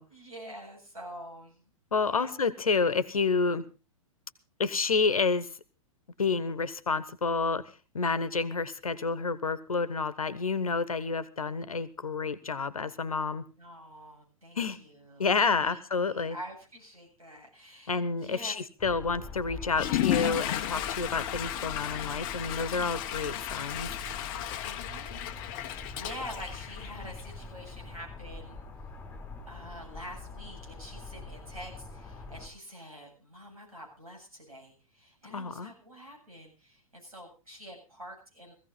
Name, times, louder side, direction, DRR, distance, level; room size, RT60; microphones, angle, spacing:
voice 1, 0.1-1.6 2.1-2.3 13.6-15.3 15.6-15.8 16.0-18.6 24.6-25.2 25.5-28.6 29.5-38.5, equal, 80° right, 1 dB, 8.0 m, -46 dB
voice 2, 1.9-3.7 4.6-5.5 6.2-13.4 14.6-14.8 15.2-16.4 17.9-23.9 35.3-35.7, left 4 dB, 75° left, 16 dB, 1.2 m, -29 dB
sound 1, 18.8-32.5, left 3 dB, 10° left, 3.0 m, -44 dB
Water / Toilet flush, 19.7-27.4, left 13 dB, 40° left, 1.1 m, -34 dB
17.5 x 15.5 x 4.0 m, 0.33 s
figure-of-eight pair, 105°, 18 cm